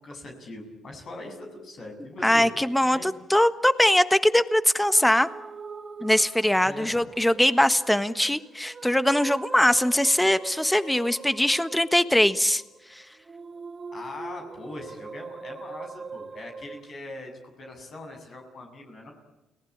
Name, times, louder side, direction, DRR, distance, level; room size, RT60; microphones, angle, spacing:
voice 1, 0.0-2.5 2.9-3.1 6.6-7.0 13.9-17.3 17.6-19.1, left 2 dB, 50° left, 4 dB, 7.8 m, -41 dB
voice 2, 2.2-5.3 6.0-12.6, left 1 dB, 5° left, 12 dB, 1.5 m, -21 dB
sound 1, 4.8-16.9, right 5 dB, 30° right, 3.0 m, -42 dB
29.5 x 19.0 x 8.8 m, 1.0 s
cardioid pair, 90°, 0 cm